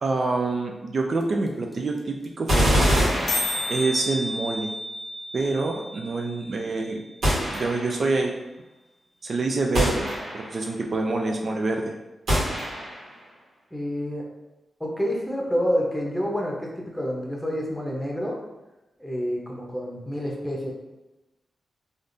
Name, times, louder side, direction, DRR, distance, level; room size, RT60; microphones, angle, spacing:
voice 1, 0.0-3.1 3.7-4.7 5.3-7.0 7.5-8.3 9.2-10.1 10.3-11.9, right 3 dB, 60° right, 2 dB, 0.3 m, -26 dB
sound 1, 1.2-1.3 1.5-1.6 1.7-2.0 2.2-2.3 2.5-2.7 3.0-3.1 3.3-7.2, left 1 dB, 50° left, 0.6 m, -32 dB
sound 2, 2.5-4.1 7.2-8.1 9.7-10.7 12.3-13.1, equal, 75° right, 1.3 m, -24 dB
voice 2, 13.7-14.2 14.8-18.4 19.0-20.7, equal, 5° left, -2 dB, 0.8 m, -28 dB
3.3 x 2.5 x 2.6 m, 1.0 s
cardioid pair, 55°, 0 cm